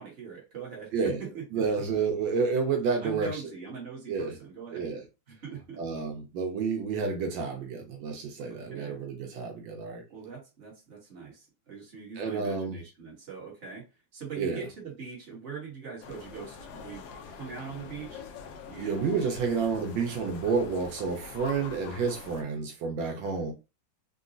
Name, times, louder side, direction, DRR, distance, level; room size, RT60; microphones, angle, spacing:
voice 1, 0.0-1.4 3.0-4.9 5.3-5.8 8.5-8.9 10.1-13.8 14.1-18.2 18.7-19.1 23.2-23.4, right 5 dB, 35° right, 1.4 m, -42 dB
voice 2, 1.5-3.4 4.1-4.3 4.7-5.0 5.8-10.0 12.2-12.8 14.4-14.7 18.7-23.5, right 5 dB, 80° right, 1.4 m, -30 dB
sound 1, 16.0-22.4, left 5 dB, 70° left, 1.0 m, -45 dB
3.9 x 2.2 x 2.5 m
omnidirectional pair, 2.1 m